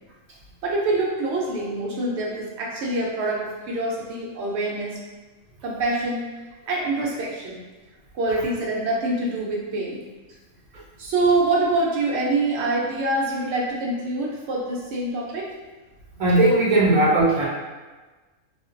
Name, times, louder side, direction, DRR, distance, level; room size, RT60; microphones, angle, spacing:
voice 1, 0.6-5.0 5.6-6.3 6.7-7.6 8.1-10.0 11.0-15.5, right 2 dB, 65° right, -3 dB, 0.8 m, -25 dB
voice 2, 16.2-17.5, right 2 dB, 85° right, -4 dB, 1.1 m, -18 dB
2.5 x 2.2 x 2.4 m, 1.3 s
omnidirectional pair, 1.4 m